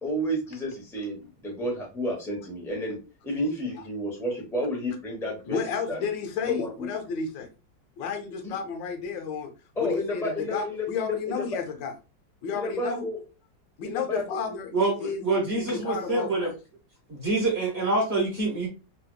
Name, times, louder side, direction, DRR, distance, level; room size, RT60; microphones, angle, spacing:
voice 1, 0.0-3.0 3.2-5.6 5.9-6.0 6.5-6.9 8.4-8.5 9.8-11.4 12.5-13.2 13.8-14.6, equal, ahead, -2 dB, 0.6 m, -31 dB
voice 2, 5.4-7.5 8.0-9.5 9.8-11.9 12.4-13.1 13.8-15.2 15.5-16.5, left 6 dB, 80° left, 5 dB, 1.3 m, -32 dB
voice 3, 14.7-16.5 17.1-18.7, right 3 dB, 45° right, -3 dB, 1.0 m, -26 dB
3.3 x 2.9 x 2.2 m, 0.30 s
omnidirectional pair, 2.0 m